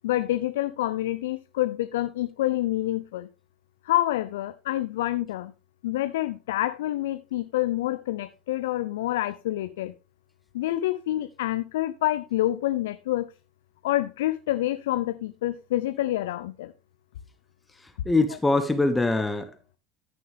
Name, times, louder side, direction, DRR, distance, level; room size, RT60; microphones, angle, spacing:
voice 1, 0.0-3.3 3.8-5.5 5.8-9.9 10.5-13.3 13.8-16.7, left 15 dB, 75° left, 0.6 m, -27 dB
voice 2, 18.0-19.8, left 2 dB, 15° left, 1.1 m, -23 dB
14.0 x 6.5 x 3.4 m
hypercardioid pair, 80°, 0 cm